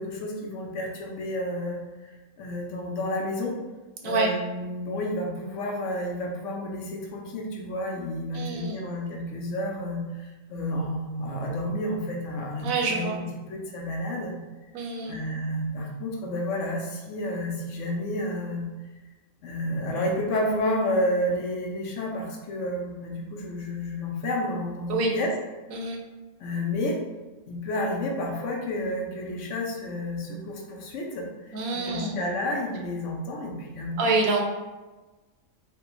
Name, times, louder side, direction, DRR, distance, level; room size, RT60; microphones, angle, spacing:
voice 1, 0.0-2.1 2.4-3.6 4.0-13.2 13.5-14.3 15.1-18.6 19.4-25.3 26.4-27.0 27.5-34.1, left 1 dB, 70° left, 0 dB, 0.9 m, -30 dB
voice 2, 8.3-8.8 12.6-13.2 14.7-15.2 24.9-25.1 25.7-26.0 31.5-32.2 34.0-34.4, right 3 dB, 75° right, 1 dB, 1.0 m, -26 dB
3.3 x 2.2 x 3.0 m, 1.2 s
omnidirectional pair, 1.5 m